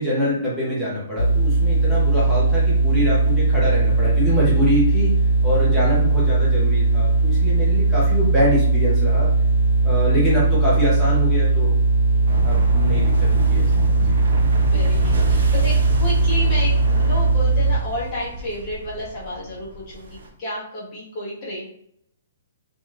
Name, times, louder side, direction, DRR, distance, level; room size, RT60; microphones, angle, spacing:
voice 1, 0.0-5.1 5.4-9.3 9.8-11.7 12.4-14.2, equal, ahead, -10 dB, 0.5 m, -25 dB
sound 1, 1.2-17.8, right 3 dB, 75° left, 0.5 m, -18 dB
sound 2, 12.3-20.3, right 1 dB, 60° right, 0.6 m, -30 dB
voice 2, 14.7-21.6, equal, 20° left, -8 dB, 0.9 m, -31 dB
2.5 x 2.2 x 3.1 m, 0.70 s
hypercardioid pair, 180°, 0 cm